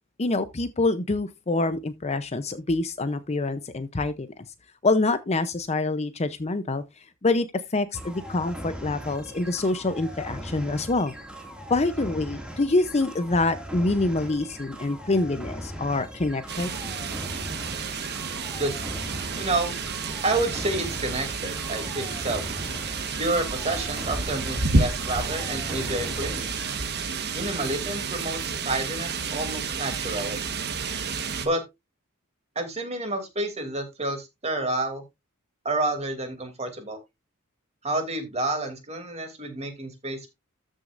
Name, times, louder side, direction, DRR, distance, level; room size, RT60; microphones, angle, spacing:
voice 1, 0.2-4.4 4.8-6.8 7.2-7.5 7.7-11.1 11.7-16.7, left 2 dB, 30° left, 0.6 m, -26 dB
sound 1, 7.9-26.8, equal, 5° right, 2.2 m, -39 dB
sound 2, 16.5-31.5, right 4 dB, 50° right, 1.3 m, -30 dB
voice 2, 18.6-18.9 19.4-19.7 20.2-22.4 23.2-26.5 27.3-30.4 31.4-31.6 32.5-35.0 35.6-37.0 37.8-40.3, right 2 dB, 30° right, 2.8 m, -29 dB
13.5 x 6.3 x 2.5 m
head